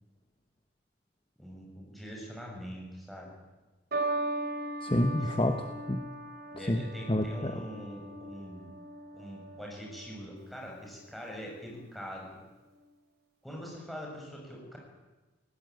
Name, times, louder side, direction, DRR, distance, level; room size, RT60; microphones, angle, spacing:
voice 1, 1.4-3.3 5.4-5.5 6.6-8.7 9.1-12.4 13.4-14.8, equal, ahead, -2 dB, 6.8 m, -43 dB
sound 1, 3.9-10.4 11.3-11.7, right 2 dB, 50° right, 3.4 m, -38 dB
voice 2, 4.8-6.0 6.5-7.5, left 1 dB, 25° left, 5 dB, 1.2 m, -29 dB
20.5 x 17.0 x 9.3 m, 1.2 s
head